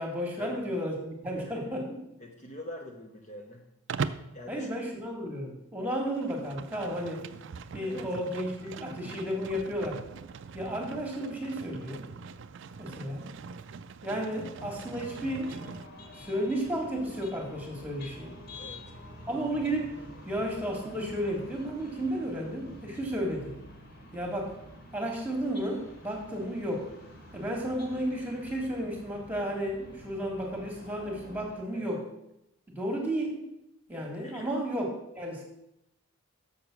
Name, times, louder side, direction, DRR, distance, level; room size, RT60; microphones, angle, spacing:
voice 1, 0.0-1.8 4.5-7.2 7.7-10.0 10.5-12.1 12.8-13.3 14.0-15.6 16.1-18.3 19.3-20.0 20.2-23.5 24.1-24.6 24.9-26.9 27.3-32.0 32.7-33.5 33.9-34.9 35.1-35.4, equal, 5° right, 1 dB, 1.6 m, -33 dB
voice 2, 1.4-1.7 2.2-3.6 4.3-4.7 7.8-8.1 13.0-13.1 18.6-18.9 31.7-32.0 34.0-34.6, left 1 dB, 30° left, 1 dB, 0.7 m, -45 dB
Livestock farm animals working animals, 3.9-4.3 6.1-15.9, right 5 dB, 55° right, 0.4 m, -41 dB
sound 1, 14.6-31.6, left 1 dB, 50° left, 2.1 m, -48 dB
7.0 x 6.6 x 5.9 m, 0.86 s
head